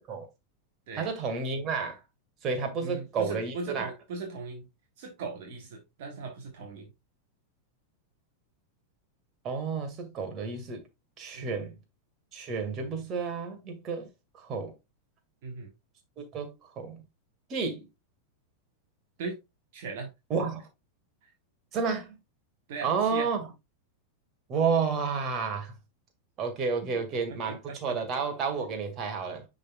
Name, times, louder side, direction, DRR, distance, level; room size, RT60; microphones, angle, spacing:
voice 1, 0.9-2.0 2.4-3.9 9.4-10.8 11.2-11.7 12.3-14.1 14.3-14.7 16.2-17.0 17.5-17.8 20.3-20.6 21.7-22.1 22.8-23.5 24.5-25.7 26.4-29.5, right 5 dB, 30° right, 1.9 m, -31 dB
voice 2, 2.8-4.7 5.0-6.9 11.3-11.6 15.4-15.7 19.2-19.4 19.7-20.1 22.7-23.3 27.5-27.9, right 4 dB, 50° right, 1.5 m, -38 dB
10.5 x 3.9 x 2.3 m
figure-of-eight pair, 90°, 0 cm